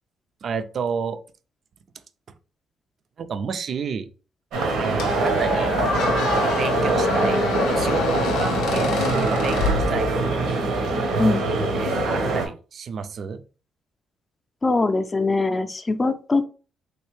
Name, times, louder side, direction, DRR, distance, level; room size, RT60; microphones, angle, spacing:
voice 1, 0.4-1.2 3.2-4.1 4.8-5.7 6.2-10.4 11.8-13.4, right 6 dB, 55° right, 10 dB, 0.4 m, -30 dB
sound 1, 4.5-12.5, right 2 dB, 90° right, 0.9 m, -23 dB
Squeak, 5.0-10.5, left 6 dB, 90° left, 0.4 m, -28 dB
voice 2, 14.6-16.5, left 3 dB, 25° left, 9 dB, 0.4 m, -22 dB
3.2 x 2.7 x 3.1 m, 0.35 s
cardioid pair, 90°, 0 cm